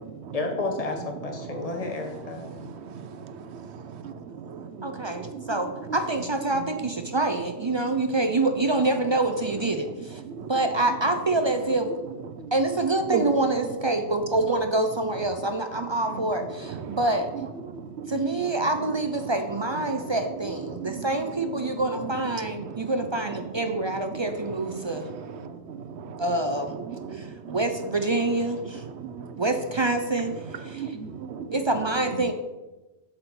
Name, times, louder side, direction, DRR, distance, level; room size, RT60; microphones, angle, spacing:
voice 1, 0.3-2.5, left 3 dB, 35° left, 3 dB, 1.2 m, -31 dB
voice 2, 2.4-6.0 6.5-6.6 10.2-10.5 12.3-12.5 13.1-13.3 16.1-16.2 16.6-17.0 17.6-18.7 19.2-19.3 19.8-20.2 20.7-21.1 21.7-22.1 22.4-22.9 23.7-23.8 24.1-26.4 26.7-27.6 28.9-29.4 30.7-31.6, right 7 dB, 80° right, 9 dB, 0.9 m, -37 dB
voice 3, 4.8-10.2 10.5-11.9 12.5-17.3 18.1-25.1 26.2-26.8 27.1-28.8 29.4-31.0 31.5-32.3, right 2 dB, 40° right, 7 dB, 0.4 m, -26 dB
8.0 x 4.4 x 6.9 m, 1.1 s
omnidirectional pair, 1.1 m